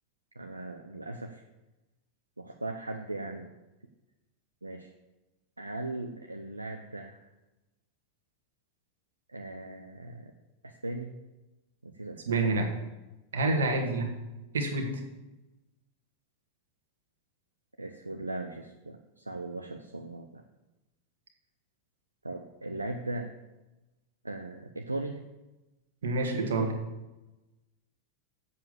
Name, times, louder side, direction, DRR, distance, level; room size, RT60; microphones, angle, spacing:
voice 1, 0.4-1.4 2.4-3.5 4.6-4.9 5.6-7.2 9.3-10.3 10.6-11.2 11.8-12.6 13.7-13.9 17.8-20.4 22.2-23.3 24.2-25.2, right 2 dB, 80° right, 4 dB, 0.6 m, -38 dB
voice 2, 12.3-12.7 13.3-14.1 14.5-14.9 26.0-26.8, right 2 dB, 65° right, 4 dB, 1.7 m, -27 dB
7.6 x 6.9 x 7.4 m, 1.0 s
figure-of-eight pair, 90°, 0 cm